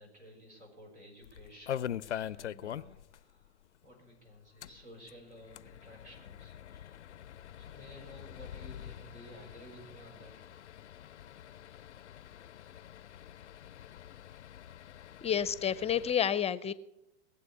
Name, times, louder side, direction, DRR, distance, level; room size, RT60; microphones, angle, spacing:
voice 1, 0.0-3.6 3.8-7.0 7.6-10.4, equal, 85° right, 2 dB, 6.2 m, -54 dB
sound 1, 1.2-3.2 3.4-3.5 3.8-3.9 4.5-16.1, left 10 dB, 90° left, 0.5 m, -44 dB
voice 2, 15.2-16.7, left 8 dB, 20° left, 18 dB, 0.5 m, -29 dB
21.0 x 7.8 x 8.2 m, 0.86 s
hypercardioid pair, 95°, 34 cm